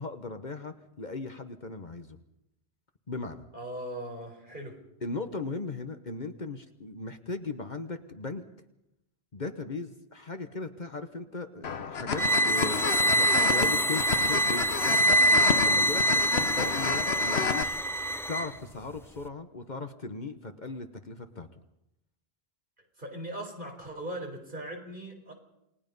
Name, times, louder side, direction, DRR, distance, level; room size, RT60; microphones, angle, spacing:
voice 1, 0.0-2.2 3.1-3.5 5.0-8.4 9.3-15.2 15.6-17.8 18.3-21.5, left 3 dB, 45° left, 8 dB, 1.3 m, -38 dB
voice 2, 3.5-4.8 16.6-16.9 23.0-25.3, right 1 dB, 50° right, 2 dB, 4.5 m, -39 dB
sound 1, 11.6-17.6, left 6 dB, 75° left, 1.2 m, -31 dB
sound 2, 12.1-18.5, right 1 dB, 5° left, 0.6 m, -25 dB
28.5 x 19.5 x 5.4 m, 0.86 s
omnidirectional pair, 1.1 m